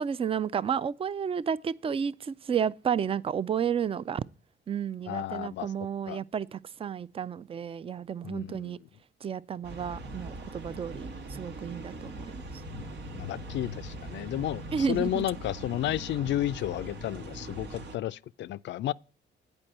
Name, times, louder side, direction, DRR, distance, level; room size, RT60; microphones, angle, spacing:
voice 1, 0.0-4.2 4.7-8.8 9.2-12.3 14.7-15.2, right 7 dB, 30° right, 0.4 m, -31 dB
voice 2, 5.1-5.7 6.1-6.2 8.2-8.8 13.2-18.9, left 13 dB, 65° left, 0.4 m, -32 dB
sound 1, 9.6-18.0, equal, 70° right, 1.1 m, -41 dB
8.7 x 5.3 x 7.7 m
cardioid pair, 90°, 20 cm